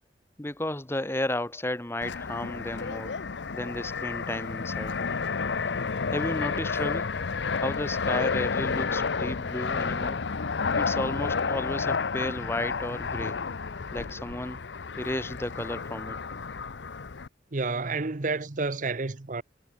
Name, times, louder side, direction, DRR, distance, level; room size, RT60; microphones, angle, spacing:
voice 1, 0.4-3.1 3.5-5.0 6.1-7.2 7.5-10.2 10.7-13.4 13.9-14.6 15.0-16.2, left 1 dB, 15° left, 1.2 m, -33 dB
Fixed-wing aircraft airplane, 2.0-17.3, left 5 dB, 80° left, 0.8 m, -31 dB
voice 2, 17.5-19.4, right 3 dB, 45° right, 0.9 m, -30 dB
head